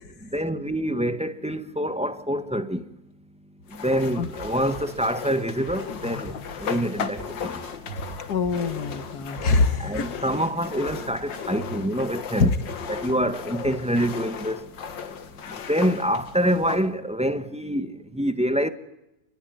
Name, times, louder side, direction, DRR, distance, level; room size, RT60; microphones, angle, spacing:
voice 1, 0.3-2.9 3.7-7.6 9.8-12.5 12.9-14.7 15.5-18.7, equal, 5° right, 1.2 m, -26 dB
sound 1, 3.7-16.9, left 7 dB, 75° left, 2.2 m, -36 dB
sound 2, 4.4-12.0, right 1 dB, 40° right, 6.4 m, -42 dB
voice 2, 8.3-10.1 12.4-12.6, left 4 dB, 55° left, 2.1 m, -23 dB
28.5 x 21.5 x 9.4 m
omnidirectional pair, 2.0 m